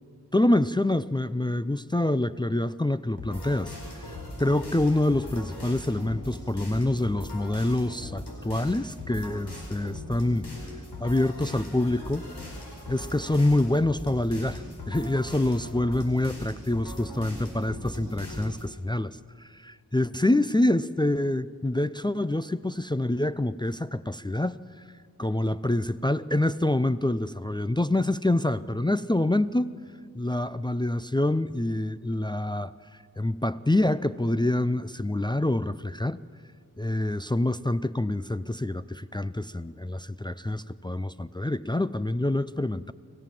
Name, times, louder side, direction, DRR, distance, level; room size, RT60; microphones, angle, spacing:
voice 1, 0.3-10.5 11.0-12.3 12.9-24.6 25.2-29.7 30.1-32.7 33.2-36.2 36.8-42.9, left 1 dB, 10° left, 13 dB, 0.5 m, -26 dB
sound 1, 3.2-18.7, left 1 dB, 85° left, 4.8 m, -39 dB
25.0 x 15.5 x 7.5 m, 2.1 s
cardioid pair, 40°, 38 cm